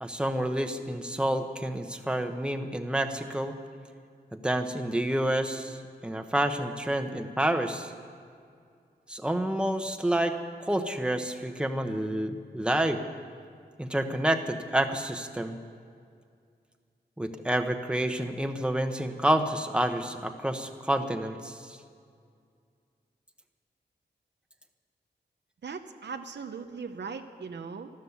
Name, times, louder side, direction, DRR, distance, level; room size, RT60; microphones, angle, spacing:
voice 1, 0.0-3.5 4.3-5.8 6.0-7.9 9.1-10.4 10.7-13.0 13.8-15.6 17.2-21.8, right 1 dB, 5° right, 6 dB, 1.1 m, -29 dB
voice 2, 25.6-27.9, right 5 dB, 80° right, 7 dB, 0.9 m, -39 dB
13.0 x 12.5 x 8.1 m, 2.2 s
wide cardioid pair, 70°, 18 cm